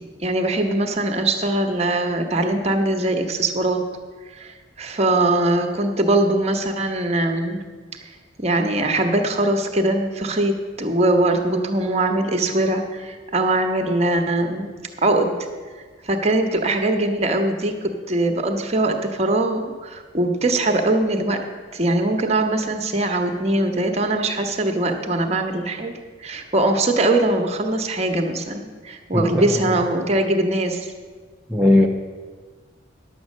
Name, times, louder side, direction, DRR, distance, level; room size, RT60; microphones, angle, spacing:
voice 1, 0.0-3.8 4.4-4.5 4.8-7.6 8.4-14.7 15.0-15.4 16.1-21.5 21.7-25.9 26.2-30.9, right 2 dB, 35° right, 4 dB, 1.1 m, -21 dB
voice 2, 29.1-29.6 31.5-31.9, left 1 dB, 5° right, -3 dB, 0.6 m, -17 dB
10.5 x 7.8 x 6.5 m, 1.5 s
head